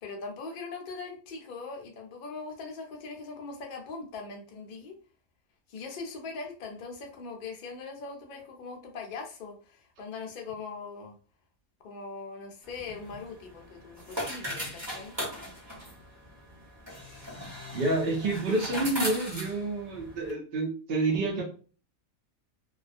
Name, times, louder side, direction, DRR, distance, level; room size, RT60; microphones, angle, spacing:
voice 1, 0.0-4.9 5.7-11.1 11.8-15.1, left 4 dB, 55° left, 1 dB, 0.5 m, -41 dB
sound 1, 12.6-20.3, equal, 25° right, 0.7 m, -39 dB
voice 2, 17.7-21.4, right 2 dB, 55° right, -2 dB, 0.7 m, -28 dB
2.3 x 2.1 x 2.4 m, 0.39 s
omnidirectional pair, 1.5 m